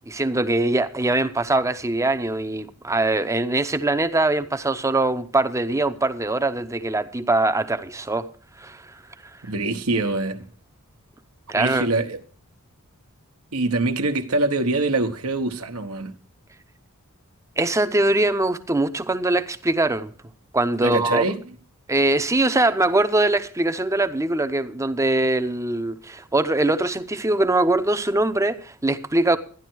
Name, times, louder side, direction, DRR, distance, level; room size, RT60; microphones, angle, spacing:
voice 1, 0.1-8.3 8.6-8.8 11.5-11.9 17.6-20.1 20.5-21.2 21.9-29.4, right 2 dB, 15° right, 0.7 m, -22 dB
voice 2, 9.4-10.5 11.6-12.2 13.5-16.1 20.8-21.4, right 2 dB, 75° right, 1.1 m, -24 dB
13.5 x 10.5 x 4.6 m
head